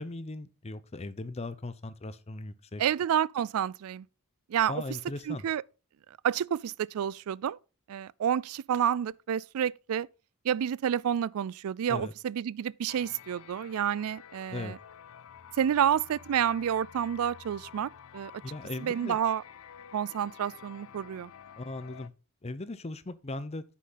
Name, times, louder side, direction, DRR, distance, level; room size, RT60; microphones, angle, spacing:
voice 1, 0.0-2.8 4.7-5.5 11.9-12.1 14.5-14.7 18.4-19.2 21.6-22.1 22.4-23.6, left 2 dB, 30° left, 0.6 m, -38 dB
voice 2, 2.8-4.1 4.5-4.8 5.3-5.6 6.2-7.6 7.9-10.1 10.4-14.8 15.6-18.4 18.8-19.4 19.9-21.3, right 9 dB, 80° right, 0.3 m, -29 dB
sound 1, 12.9-22.1, left 8 dB, 65° left, 0.5 m, -50 dB
9.7 x 6.2 x 3.9 m
head